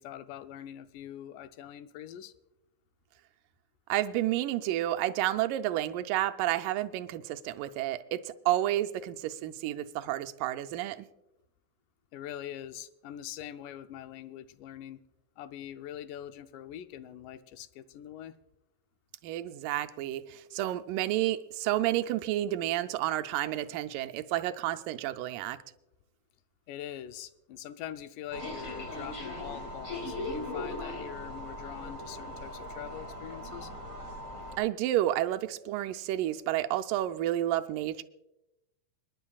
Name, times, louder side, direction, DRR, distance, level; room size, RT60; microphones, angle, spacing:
voice 1, 0.0-2.3 12.1-15.0 15.4-18.4 26.7-33.7, left 11 dB, 80° left, 10 dB, 2.1 m, -43 dB
voice 2, 3.9-11.1 19.2-25.6 34.6-38.0, right 14 dB, 85° right, 8 dB, 2.2 m, -30 dB
sound 1, 28.3-34.6, left 1 dB, 25° left, 2.2 m, -39 dB
29.5 x 10.5 x 2.3 m, 0.92 s
omnidirectional pair, 3.8 m